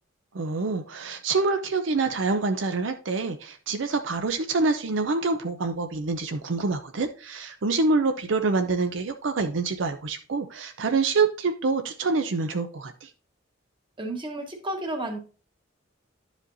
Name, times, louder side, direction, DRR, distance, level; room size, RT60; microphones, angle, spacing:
voice 1, 0.3-13.1, right 3 dB, 75° right, 7 dB, 0.6 m, -26 dB
voice 2, 14.0-15.2, right 1 dB, 25° right, 3 dB, 1.3 m, -32 dB
11.0 x 5.0 x 2.6 m, 0.36 s
head